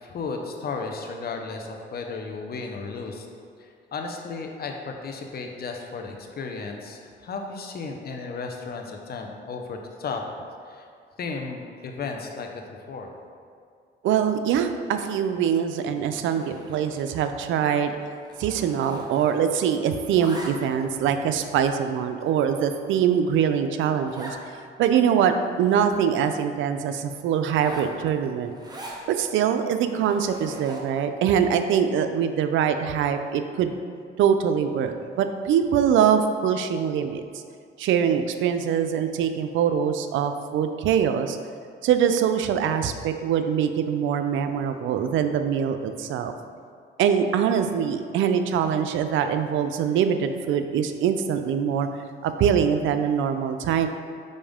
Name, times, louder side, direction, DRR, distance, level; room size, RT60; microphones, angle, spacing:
voice 1, 0.0-3.3 3.6-10.2 10.7-10.9 11.2-12.6 12.9-13.1, left 4 dB, 50° left, 3 dB, 0.8 m, -34 dB
voice 2, 14.0-18.0 18.4-24.4 24.8-28.5 29.1-33.8 34.2-37.2 37.8-41.4 41.8-46.3 47.0-51.9 52.2-53.9, right 8 dB, 80° right, 8 dB, 0.4 m, -23 dB
Zipper (clothing), 16.1-17.1 17.4-17.6 17.9-19.6 19.9-20.9 21.5-21.6 22.2-22.3 22.7-22.8 23.0-23.1 23.4-23.5 24.1-24.4 24.9-25.0 25.2-26.5 27.4-29.0 29.6-31.0, right 1 dB, 20° right, 1.0 m, -42 dB
5.3 x 5.0 x 3.6 m, 2.2 s
cardioid pair, 90°, 20 cm